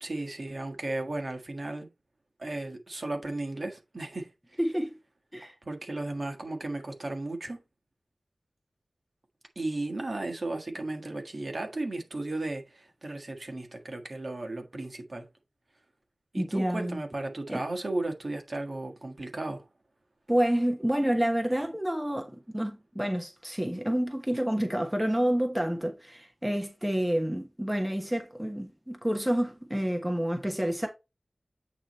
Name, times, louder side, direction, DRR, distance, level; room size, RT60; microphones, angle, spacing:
voice 1, 0.0-1.9 2.4-4.6 5.6-7.6 9.5-15.3 16.3-19.6, right 2 dB, 45° right, 1.5 m, -35 dB
voice 2, 4.6-5.0 5.3-5.5 16.3-17.0 17.5-17.6 20.3-30.9, equal, 5° right, 1.2 m, -29 dB
8.7 x 3.1 x 4.2 m
wide cardioid pair, 85°, 0 cm